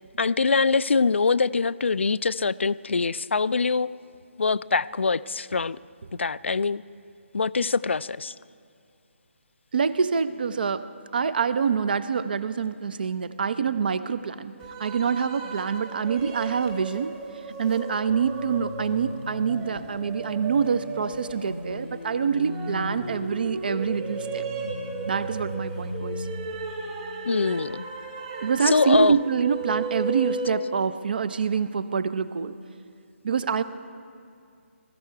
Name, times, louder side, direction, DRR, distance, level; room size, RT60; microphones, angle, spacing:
voice 1, 0.2-3.9 4.4-5.8 6.2-6.8 7.3-8.3 27.2-27.8 28.6-29.2, left 4 dB, 65° left, 17 dB, 0.3 m, -23 dB
voice 2, 9.7-14.5 14.8-17.2 17.6-24.4 25.1-26.3 28.4-32.6 33.2-33.6, right 6 dB, 45° right, 15 dB, 0.6 m, -26 dB
sound 1, 14.6-30.5, right 4 dB, 20° right, 1.3 m, -36 dB
sound 2, 18.1-28.0, equal, 85° left, 1.0 m, -38 dB
20.5 x 14.0 x 4.6 m, 2.4 s
figure-of-eight pair, 145°, 7 cm